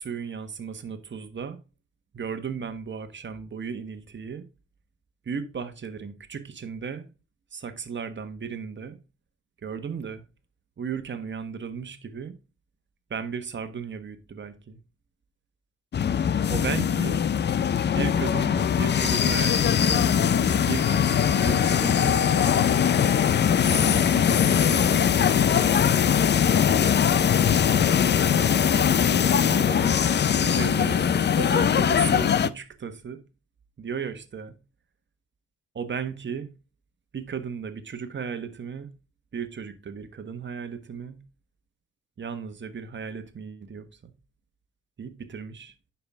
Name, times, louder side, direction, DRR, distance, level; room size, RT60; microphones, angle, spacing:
voice 1, 0.0-1.6 2.1-4.4 5.3-7.1 7.5-9.0 9.6-10.2 10.8-12.3 13.1-14.8 16.5-17.2 18.0-20.0 20.7-22.8 23.6-25.4 29.6-29.9 30.3-33.2 33.8-34.5 35.7-36.5 37.1-38.9 39.3-41.2 42.2-44.1 45.0-45.7, right 6 dB, 40° right, 1.4 m, -35 dB
sound 1, 15.9-32.5, left 8 dB, 35° left, 0.5 m, -21 dB
10.0 x 5.8 x 3.6 m
cardioid pair, 90°, 30 cm